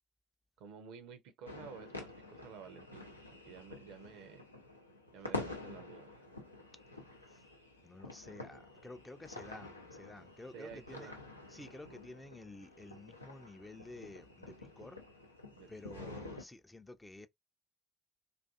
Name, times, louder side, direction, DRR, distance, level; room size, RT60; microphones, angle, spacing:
voice 1, 0.6-4.5 5.1-6.3 10.5-11.2 15.5-16.1, right 6 dB, 60° right, 0.5 m, -52 dB
sound 1, 1.5-16.4, left 2 dB, 85° left, 0.4 m, -48 dB
voice 2, 7.8-11.1 11.5-15.0 15.7-17.3, left 2 dB, 15° left, 0.4 m, -51 dB
2.5 x 2.4 x 2.3 m
figure-of-eight pair, 50°, 0 cm